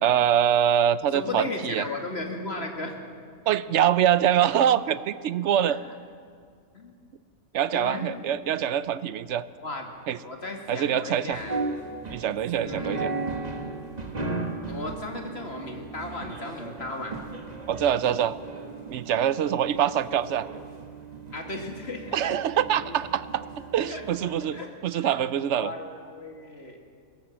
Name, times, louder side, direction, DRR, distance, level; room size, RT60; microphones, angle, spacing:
voice 1, 0.0-1.8 3.5-5.8 7.5-9.5 10.1-10.2 10.7-11.4 12.1-13.1 17.7-18.4 18.9-20.5 22.1-23.5 23.7-25.7, right 10 dB, 70° right, 15 dB, 1.0 m, -24 dB
voice 2, 1.1-3.0 5.6-5.8 6.7-6.9 7.7-8.2 9.6-9.9 10.2-11.6 12.6-13.1 14.7-17.2 21.3-22.2 23.9-24.0 24.5-24.7 25.0-25.2 25.5-26.8, left 2 dB, 60° left, 2 dB, 2.6 m, -35 dB
sound 1, 11.3-24.6, right 3 dB, 35° right, 1.7 m, -36 dB
22.0 x 17.5 x 7.6 m, 2.2 s
omnidirectional pair, 1.2 m